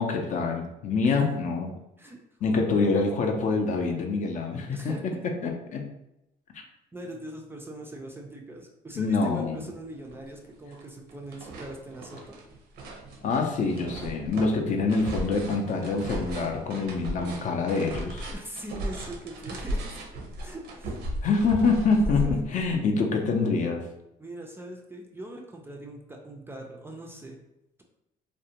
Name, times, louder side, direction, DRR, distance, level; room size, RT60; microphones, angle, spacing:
voice 1, 0.0-1.7 2.4-4.8 5.2-5.9 9.0-9.6 13.2-18.3 21.2-23.8, left 4 dB, 50° left, 3 dB, 0.4 m, -26 dB
voice 2, 4.7-5.3 6.9-12.4 18.3-20.0 20.4-21.0 22.1-22.4 24.2-27.4, right 1 dB, 15° right, 1 dB, 0.3 m, -41 dB
sound 1, 9.6-9.7 10.1-10.8 11.1-22.8, right 1 dB, 80° right, 0.6 m, -36 dB
2.5 x 2.1 x 2.8 m, 0.86 s
cardioid pair, 110°, 17 cm